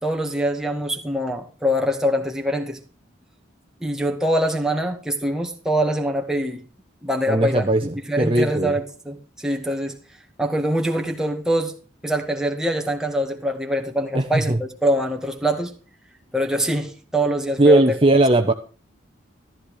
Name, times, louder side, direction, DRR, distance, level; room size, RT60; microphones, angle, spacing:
voice 1, 0.0-2.8 3.8-6.6 7.0-7.7 8.1-10.0 10.4-11.7 12.0-15.7 16.3-18.0, equal, 5° right, 2.0 m, -24 dB
voice 2, 7.3-8.7 14.1-14.6 17.6-18.5, right 2 dB, 30° right, 1.1 m, -18 dB
14.5 x 13.5 x 4.9 m
head